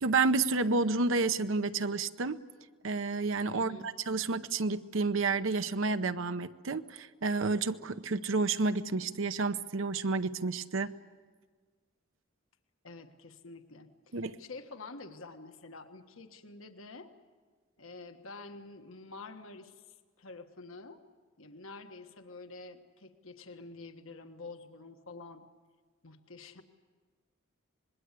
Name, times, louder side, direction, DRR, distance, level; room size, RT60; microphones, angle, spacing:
voice 1, 0.0-2.4 2.8-10.9 14.1-14.4, right 3 dB, 70° right, 10 dB, 0.8 m, -30 dB
voice 2, 3.5-3.9 12.8-17.1 17.8-21.0 21.4-25.4 26.0-26.6, left 3 dB, 75° left, 7 dB, 1.5 m, -48 dB
26.0 x 21.0 x 8.3 m, 1.5 s
head